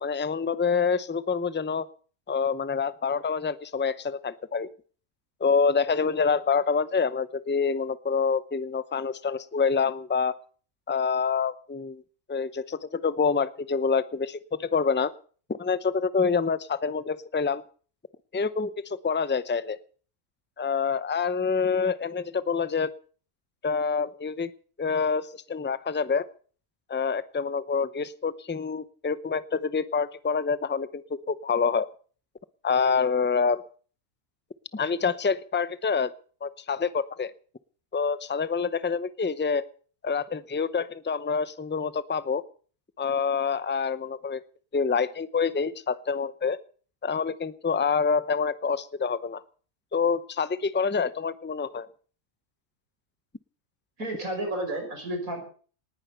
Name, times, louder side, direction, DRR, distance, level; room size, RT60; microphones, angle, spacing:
voice 1, 0.0-1.9 2.3-4.7 5.4-10.4 10.9-12.0 12.3-15.1 15.6-17.6 18.3-19.8 20.6-22.9 23.6-24.5 24.8-26.3 26.9-31.9 32.6-33.6 34.7-36.1 36.4-37.3 37.9-39.6 40.0-42.4 43.0-44.4 44.7-46.6 47.0-49.4 49.9-51.9, left 5 dB, 15° left, 15 dB, 0.4 m, -27 dB
voice 2, 54.0-55.4, right 1 dB, 70° right, 4 dB, 5.9 m, -31 dB
19.5 x 10.5 x 6.8 m, 0.43 s
omnidirectional pair, 1.5 m